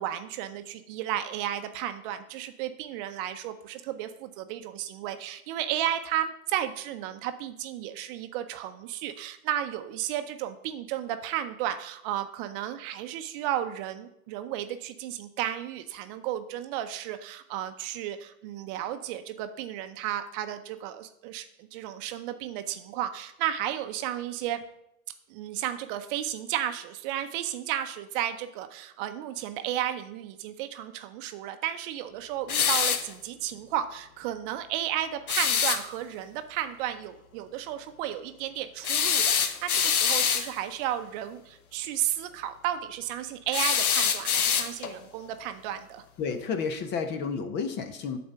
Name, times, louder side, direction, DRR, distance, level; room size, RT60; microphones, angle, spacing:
voice 1, 0.0-24.6 25.3-46.0, right 11 dB, 35° right, 9 dB, 0.7 m, -33 dB
sound 1, 32.5-33.1 35.3-35.8 38.8-40.5 43.5-45.0, left 7 dB, 80° left, 1.0 m, -25 dB
voice 2, 46.2-48.2, left 5 dB, 25° left, 9 dB, 0.6 m, -31 dB
8.6 x 4.3 x 6.8 m, 0.78 s
hypercardioid pair, 115°, 44 cm